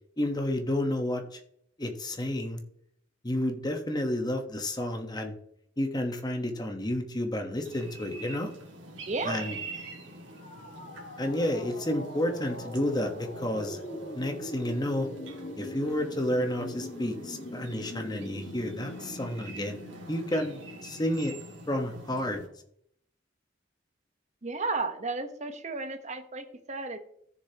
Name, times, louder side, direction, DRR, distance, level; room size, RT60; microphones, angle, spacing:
voice 1, 0.2-1.4 1.8-2.6 3.2-5.3 5.8-8.5 9.2-9.5 11.2-13.8 14.1-15.1 15.6-19.8 20.1-21.3 21.7-22.4, left 1 dB, 20° left, 5 dB, 1.1 m, -30 dB
sound 1, 7.6-22.5, right 2 dB, 75° right, 2.0 m, -46 dB
voice 2, 9.1-9.5 24.4-27.0, right 3 dB, 35° right, 7 dB, 1.0 m, -33 dB
sound 2, 10.3-22.1, left 1 dB, 50° left, 1.6 m, -43 dB
14.5 x 6.8 x 2.9 m, 0.70 s
head